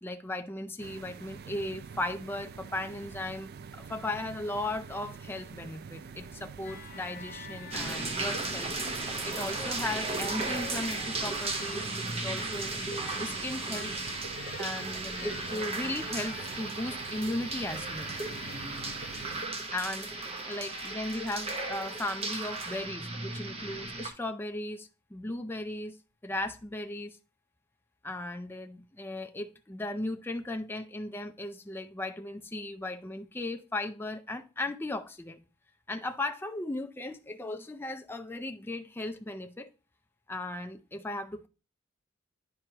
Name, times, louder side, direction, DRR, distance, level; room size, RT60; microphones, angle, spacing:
voice 1, 0.0-8.7 9.2-11.9 12.2-13.9 14.6-18.2 19.7-26.0 26.2-27.2 28.0-35.4 35.9-39.7 40.3-41.5, left 2 dB, 10° left, 0.5 m, -37 dB
sound 1, 0.8-19.4, right 6 dB, 55° right, 0.4 m, -46 dB
sound 2, 6.6-11.1 11.7-12.0 12.4-12.7 13.0-15.8 16.1-22.3, left 6 dB, 50° left, 0.7 m, -51 dB
sound 3, 7.7-24.1, right 3 dB, 30° right, 1.0 m, -35 dB
10.5 x 4.5 x 2.9 m
head